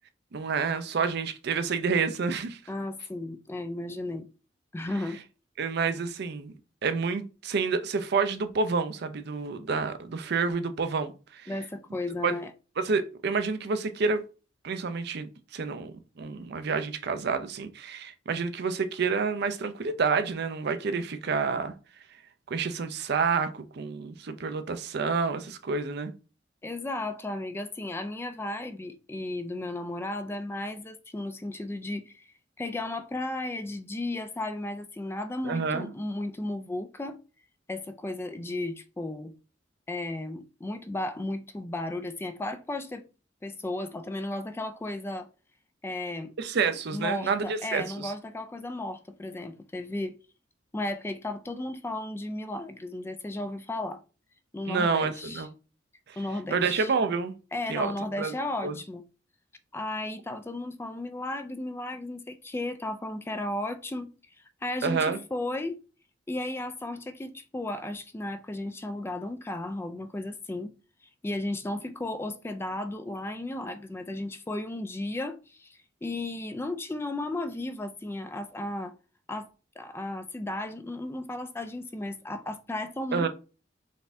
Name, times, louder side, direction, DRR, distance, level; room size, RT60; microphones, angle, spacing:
voice 1, 0.3-2.6 5.6-6.5 6.8-11.5 12.2-12.3 12.8-14.2 14.6-21.7 22.5-26.1 35.4-35.9 46.4-48.1 54.7-55.5 56.1-56.2 56.5-57.3 57.7-58.3 58.6-58.8 64.8-65.2 83.1-83.3, right 5 dB, 60° right, 0.5 m, -29 dB
voice 2, 2.7-4.3 4.7-5.2 11.5-12.5 26.6-32.3 32.6-37.2 37.7-39.3 39.9-43.0 43.4-45.3 45.8-46.3 46.9-50.1 50.7-54.0 54.5-55.5 56.2-56.9 57.5-59.0 59.7-64.1 64.6-65.8 66.3-70.7 71.2-78.9 79.3-79.5 79.8-83.3, left 2 dB, 15° left, 0.3 m, -34 dB
4.1 x 2.6 x 3.4 m
head